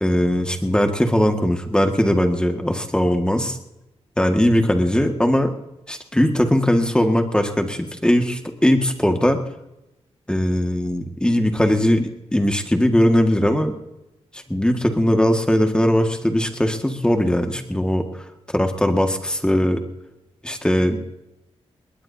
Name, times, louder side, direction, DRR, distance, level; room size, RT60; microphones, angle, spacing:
voice 1, 0.0-3.6 4.2-5.5 5.9-9.4 10.3-13.7 14.3-18.0 18.5-19.8 20.4-21.0, equal, 10° left, 5 dB, 1.8 m, -19 dB
20.5 x 20.0 x 2.8 m, 0.93 s
cardioid pair, 75°, 11 cm